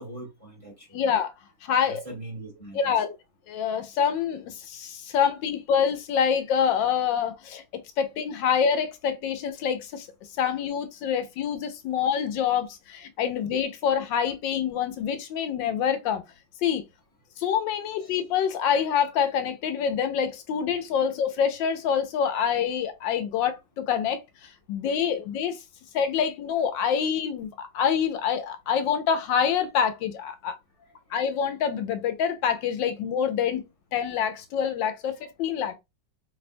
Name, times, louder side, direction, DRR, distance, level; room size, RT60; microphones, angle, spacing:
voice 1, 0.0-1.1 1.8-3.0 18.0-18.1 30.8-31.2 35.2-35.3, right 1 dB, 20° right, 1.1 m, -42 dB
voice 2, 0.9-1.3 1.6-2.0 2.7-3.1 3.5-7.6 8.0-10.1 10.4-16.2 16.6-16.8 17.4-25.6 25.9-30.6 31.1-33.6 33.9-35.7, left 7 dB, 85° left, 1.4 m, -26 dB
3.3 x 2.2 x 4.2 m
omnidirectional pair, 2.0 m